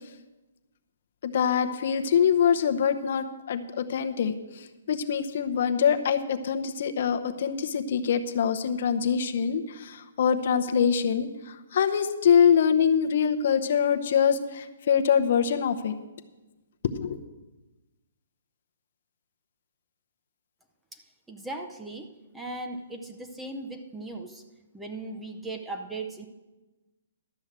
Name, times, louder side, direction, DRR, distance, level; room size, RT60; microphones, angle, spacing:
voice 1, 1.2-15.9 16.9-17.2, left 7 dB, 55° left, 7 dB, 0.8 m, -24 dB
voice 2, 21.3-24.4 24.7-26.3, right 2 dB, 5° right, 4 dB, 0.7 m, -38 dB
12.5 x 6.3 x 7.4 m, 1.1 s
hypercardioid pair, 160°, 0 cm